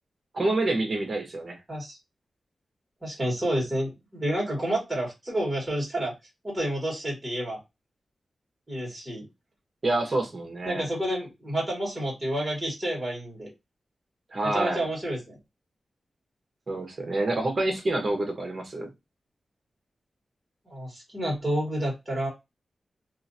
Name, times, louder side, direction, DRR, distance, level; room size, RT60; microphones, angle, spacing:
voice 1, 0.3-1.6 9.8-10.8 14.3-14.9 16.7-18.9, right 2 dB, 35° right, 1.1 m, -27 dB
voice 2, 3.0-6.1 6.4-7.6 8.7-9.3 10.7-13.5 14.4-15.4 20.7-22.3, right 1 dB, 15° right, 1.6 m, -29 dB
2.8 x 2.6 x 2.7 m
wide cardioid pair, 135°, 0 cm